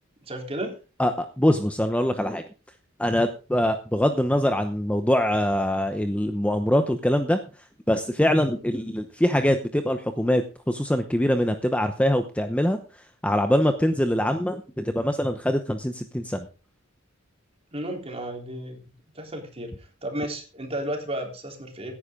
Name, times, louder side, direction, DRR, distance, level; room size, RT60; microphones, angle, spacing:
voice 1, 0.2-0.8 17.7-18.8 19.1-21.9, right 1 dB, 30° right, 2 dB, 3.6 m, -33 dB
voice 2, 1.0-2.4 3.0-7.4 7.9-12.8 13.2-16.5, left 1 dB, 5° left, 7 dB, 0.8 m, -23 dB
17.0 x 9.9 x 3.8 m, 0.34 s
head